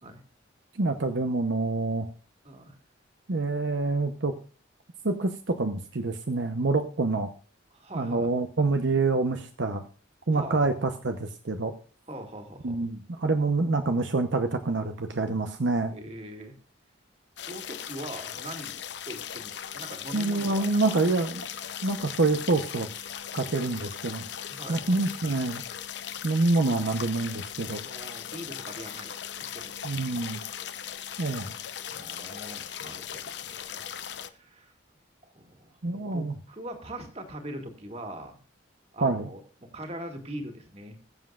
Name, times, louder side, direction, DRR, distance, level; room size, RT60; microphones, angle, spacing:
voice 1, 0.7-2.1 3.3-4.3 5.0-7.3 7.9-9.9 10.3-11.7 12.6-15.9 20.1-21.4 21.8-22.9 23.3-24.2 24.7-25.6 26.2-27.8 29.8-30.4 31.2-31.5 35.8-36.3 39.0-39.3, right 3 dB, 70° right, 7 dB, 0.9 m, -26 dB
voice 2, 2.4-2.8 7.7-8.3 10.3-10.7 12.1-12.8 15.9-16.6 17.4-18.8 19.1-21.0 24.5-25.1 27.8-29.1 29.5-29.9 31.9-33.8 34.2-34.7 35.2-38.4 38.9-41.0, right 1 dB, 30° right, 4 dB, 2.3 m, -42 dB
sound 1, 17.4-34.3, left 9 dB, 60° left, 0.8 m, -38 dB
21.5 x 7.6 x 2.4 m, 0.39 s
head